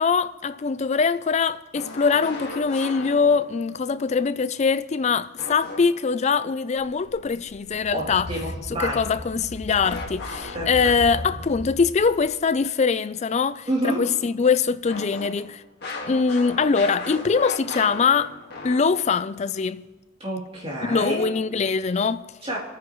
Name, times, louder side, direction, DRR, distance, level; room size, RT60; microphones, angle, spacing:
voice 1, 0.0-8.3 8.7-15.6 16.1-18.3 18.6-19.8 20.8-22.3, left 5 dB, 35° left, 0.4 m, -23 dB
sound 1, 1.7-3.7 5.4-6.2 9.8-11.3 14.9-19.2, left 3 dB, 55° left, 1.8 m, -36 dB
sound 2, 6.8-12.2, equal, 60° right, 5.5 m, -38 dB
voice 2, 7.9-9.0 10.5-10.9 13.7-14.0 20.2-21.3 22.4-22.6, right 1 dB, 30° right, 3.0 m, -28 dB
27.0 x 9.4 x 3.1 m
head